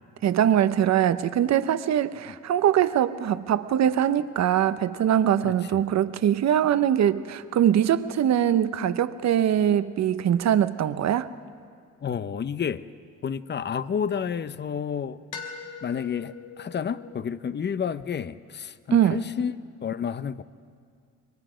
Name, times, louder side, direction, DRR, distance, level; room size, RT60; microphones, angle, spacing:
voice 1, 0.2-11.3 18.9-19.2, right 10 dB, 60° right, 0.9 m, -22 dB
sound 1, 3.4-7.1 11.4-13.9 15.3-17.2, left 6 dB, 90° left, 2.7 m, -45 dB
voice 2, 5.4-5.8 12.0-12.8 13.2-15.2 15.8-19.5 19.8-20.4, left 7 dB, 35° left, 0.7 m, -30 dB
26.5 x 23.0 x 5.1 m
cardioid pair, 90°, 30 cm